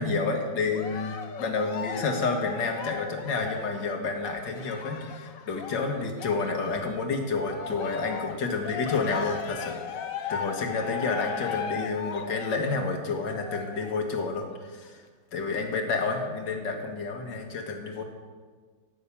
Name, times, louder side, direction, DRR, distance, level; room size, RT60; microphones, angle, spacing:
voice 1, 0.0-15.0 15.3-18.0, left 4 dB, 75° left, 4 dB, 2.3 m, -30 dB
Cheering, 0.7-7.1 7.4-14.0 14.6-14.7, left 7 dB, 55° left, 1.1 m, -37 dB
15.5 x 6.3 x 8.6 m, 1.5 s
omnidirectional pair, 2.0 m